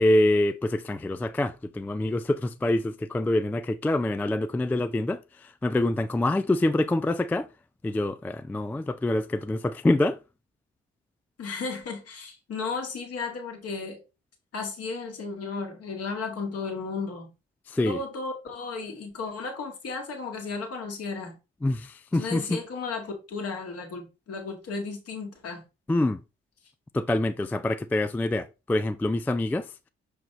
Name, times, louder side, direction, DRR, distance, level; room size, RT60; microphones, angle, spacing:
voice 1, 0.0-7.5 7.8-10.2 17.7-18.0 21.6-22.5 25.9-26.2 26.9-29.7, left 1 dB, 5° left, 0.3 m, -26 dB
voice 2, 11.4-14.0 14.5-17.3 17.9-21.4 22.1-25.6, left 4 dB, 50° left, 1.8 m, -34 dB
6.4 x 4.8 x 3.1 m
figure-of-eight pair, 40°, 31 cm